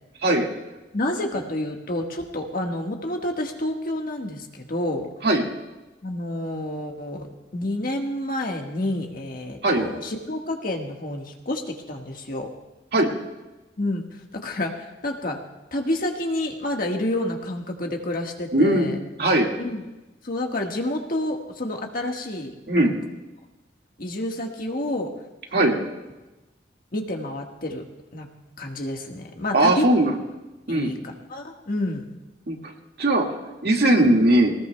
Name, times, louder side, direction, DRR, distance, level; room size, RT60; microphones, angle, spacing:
voice 1, 0.9-5.1 6.0-7.3 7.5-12.5 13.8-14.0 14.3-15.4 15.7-19.0 19.6-19.8 20.2-22.5 24.0-25.1 26.9-27.8 28.1-28.3 28.6-29.8 30.7-32.0, left 1 dB, 55° left, 2 dB, 1.5 m, -29 dB
voice 2, 18.5-18.9 19.2-19.5 22.7-22.9 25.5-25.8 29.5-30.1 30.7-30.9 32.5-32.7 33.0-33.4 33.6-34.5, right 1 dB, 60° right, 0 dB, 2.0 m, -19 dB
21.5 x 19.0 x 2.3 m, 1.1 s
head